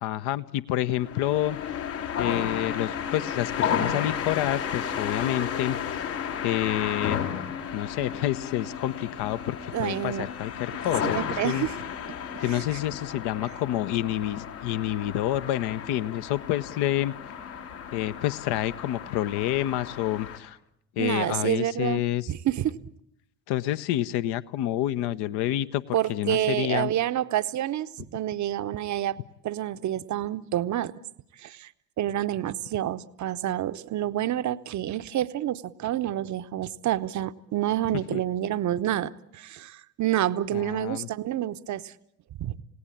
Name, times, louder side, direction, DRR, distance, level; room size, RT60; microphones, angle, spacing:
voice 1, 0.0-1.6 2.2-6.0 6.4-7.2 7.7-11.7 12.4-17.1 17.9-20.6 21.0-22.3 23.5-25.8 26.1-26.9 38.1-38.2 40.5-41.1, left 13 dB, 50° left, 1.0 m, -28 dB
sound 1, 0.9-20.4, left 8 dB, 70° left, 3.0 m, -33 dB
voice 2, 9.7-10.3 10.8-11.8 12.1-12.6 21.0-22.8 25.9-30.9 31.4-31.7 32.0-41.9 42.4-42.6, right 12 dB, 35° right, 0.9 m, -28 dB
28.5 x 17.5 x 8.7 m
figure-of-eight pair, 55°, 50 cm